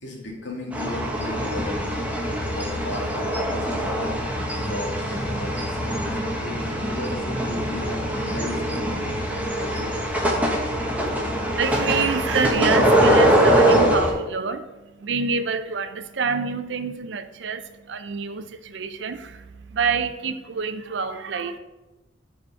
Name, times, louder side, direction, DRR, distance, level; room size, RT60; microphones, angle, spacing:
voice 1, 0.0-10.5, left 1 dB, 70° left, -2 dB, 2.3 m, -36 dB
sound 1, 0.7-14.1, right 1 dB, 10° right, 1.1 m, -23 dB
voice 2, 11.1-21.6, right 5 dB, 70° right, 10 dB, 0.5 m, -27 dB
7.6 x 4.8 x 5.5 m, 1.1 s
head